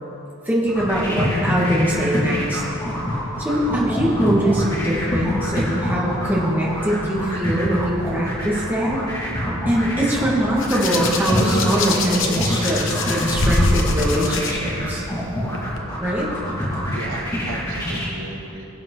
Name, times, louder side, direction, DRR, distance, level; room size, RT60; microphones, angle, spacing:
voice 1, 0.5-2.6 3.4-9.0 9.7-15.0 16.0-16.3, equal, 10° right, -6 dB, 2.1 m, -22 dB
sound 1, 0.6-18.1, equal, 15° left, 2.7 m, -26 dB
Hands, 10.6-14.5 15.5-15.8, left 2 dB, 65° left, 1.2 m, -23 dB
voice 2, 16.4-18.7, right 2 dB, 80° right, 1 dB, 1.1 m, -36 dB
22.0 x 7.4 x 4.0 m, 3.0 s
head